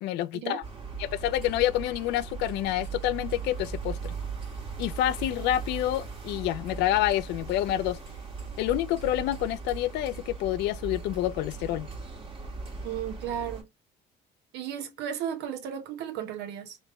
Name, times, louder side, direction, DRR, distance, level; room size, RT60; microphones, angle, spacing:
voice 1, 0.0-0.6 1.0-4.1 4.8-8.0 8.6-11.9, left 13 dB, 85° left, 0.4 m, -28 dB
sound 1, 0.6-13.6, right 5 dB, 30° right, 1.3 m, -38 dB
voice 2, 12.8-13.7 14.5-16.8, right 9 dB, 85° right, 0.8 m, -34 dB
3.3 x 3.1 x 2.9 m
cardioid pair, 110°, 17 cm